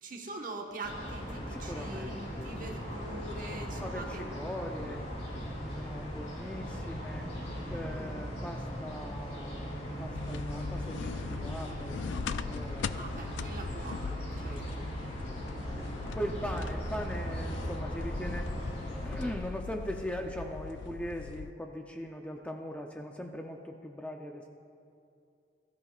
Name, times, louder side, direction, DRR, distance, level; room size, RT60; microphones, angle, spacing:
voice 1, 0.0-4.4 7.7-8.1 12.9-14.2 14.4-14.9, right 2 dB, 45° right, 1 dB, 1.3 m, -43 dB
sound 1, 0.8-19.3, equal, 35° left, 3.3 m, -38 dB
voice 2, 1.5-3.0 3.8-5.0 5.6-7.3 7.7-12.0 12.4-13.3 14.4-14.9 15.5-18.5 19.0-24.5, equal, 5° left, 2 dB, 0.6 m, -40 dB
sound 2, 10.1-21.5, left 6 dB, 85° left, 0.3 m, -41 dB
21.0 x 13.5 x 2.4 m, 2.5 s
head